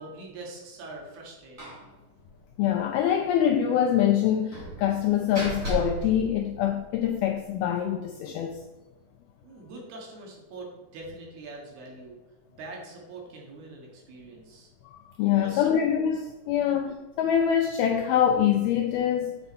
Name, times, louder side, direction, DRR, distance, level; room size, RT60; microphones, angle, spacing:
voice 1, 0.0-1.8 9.4-12.2 12.5-14.7 15.4-15.7 16.6-16.8, right 2 dB, 65° right, 3.6 m, -43 dB
Slam, 1.6-1.9 2.2-2.3 2.6-2.7 4.5-7.1, right 1 dB, 20° right, 2.8 m, -35 dB
voice 2, 2.6-8.6 14.8-19.4, left 9 dB, 85° left, 2.2 m, -25 dB
8.2 x 6.9 x 4.3 m
omnidirectional pair, 5.0 m